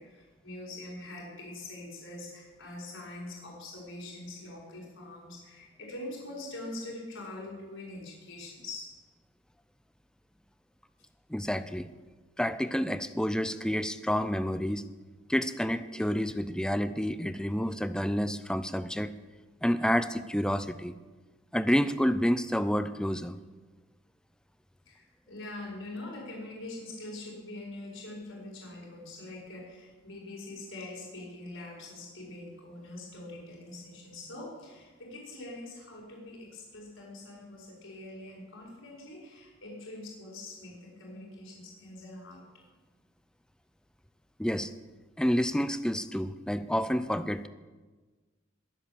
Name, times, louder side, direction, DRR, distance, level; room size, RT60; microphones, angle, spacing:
voice 1, 0.0-8.8 24.8-42.5, left 2 dB, 85° left, -3 dB, 5.0 m, -43 dB
voice 2, 11.3-11.9 12.4-14.8 15.3-19.1 19.6-20.9 21.5-23.4 44.4-44.7 45.2-47.5, equal, 5° left, 12 dB, 0.6 m, -29 dB
21.5 x 7.6 x 7.6 m, 1.3 s
head